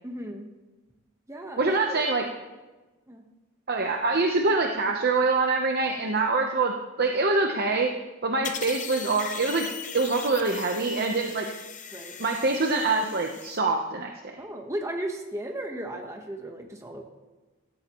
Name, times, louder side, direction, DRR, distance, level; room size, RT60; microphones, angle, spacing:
voice 1, 0.0-0.5 1.3-2.1 3.1-3.2 11.9-12.2 14.4-17.0, right 1 dB, 15° right, 3 dB, 1.1 m, -35 dB
voice 2, 1.6-2.2 3.7-7.9 8.2-9.7 9.9-11.5 12.2-14.3, right 3 dB, 45° right, 2 dB, 0.9 m, -25 dB
sound 1, 8.4-13.6, left 7 dB, 35° left, 0.8 m, -39 dB
17.0 x 13.0 x 3.0 m, 1.2 s
head